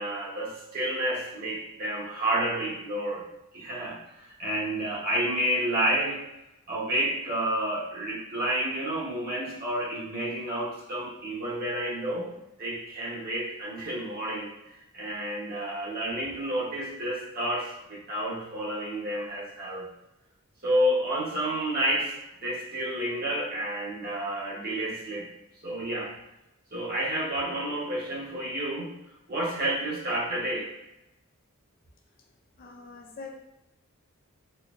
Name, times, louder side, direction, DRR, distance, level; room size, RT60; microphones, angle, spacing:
voice 1, 0.0-3.2 3.5-6.2 6.7-12.3 12.6-14.5 14.9-19.9 20.6-22.1 22.4-25.3 25.6-26.1 26.7-29.0 29.3-30.7, right 1 dB, 45° right, -5 dB, 1.0 m, -30 dB
voice 2, 32.6-33.3, left 4 dB, 40° left, 2 dB, 0.4 m, -43 dB
4.3 x 2.6 x 2.4 m, 0.92 s
head